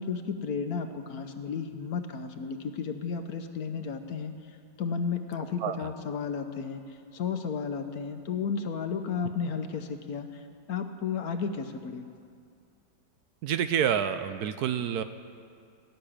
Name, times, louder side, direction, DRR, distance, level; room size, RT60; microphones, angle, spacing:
voice 1, 0.0-4.3 4.8-6.8 7.1-10.3 10.7-12.0, left 6 dB, 65° left, 7 dB, 1.2 m, -33 dB
voice 2, 13.4-15.0, right 9 dB, 75° right, 10 dB, 1.0 m, -28 dB
17.5 x 6.8 x 10.0 m, 2.3 s
omnidirectional pair, 1.9 m